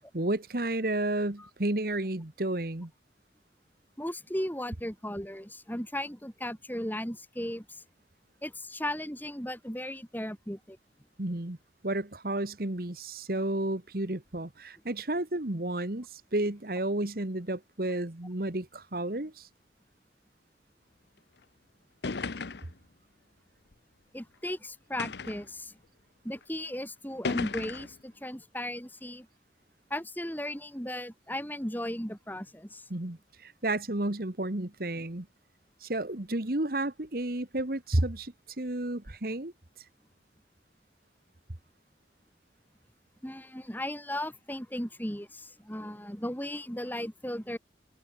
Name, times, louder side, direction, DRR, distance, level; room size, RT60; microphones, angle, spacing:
voice 1, 0.1-2.9 11.2-11.6 11.8-19.5 32.9-35.3 35.8-39.8, right 1 dB, 55° right, 1.6 m, -32 dB
voice 2, 4.0-7.8 8.4-10.8 24.1-25.8 26.2-29.3 29.9-32.8 43.2-47.6, left 1 dB, 10° left, 5.5 m, -36 dB
sound 1, 21.4-21.5 22.0-22.8 23.7-23.8 25.0-25.5 26.4-26.5 27.2-28.0, left 4 dB, 70° left, 0.9 m, -35 dB
head